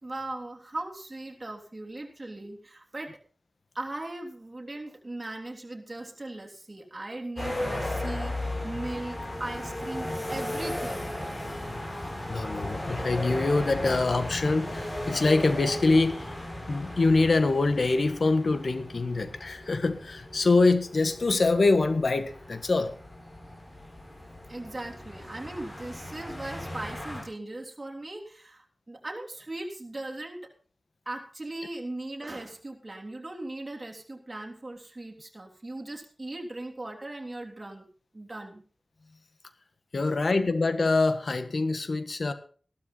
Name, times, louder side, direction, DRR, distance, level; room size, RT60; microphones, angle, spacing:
voice 1, 0.0-3.1 3.7-11.1 12.5-12.7 24.5-30.4 31.0-37.9 38.1-38.6 40.0-40.2, right 2 dB, 35° right, 1 dB, 3.3 m, -39 dB
sound 1, 7.4-27.2, left 1 dB, 40° left, 7.0 m, -36 dB
voice 2, 12.3-16.2 16.7-22.9 39.9-42.3, left 3 dB, 70° left, 10 dB, 1.6 m, -24 dB
14.5 x 12.5 x 4.1 m, 0.42 s
cardioid pair, 40°, 0 cm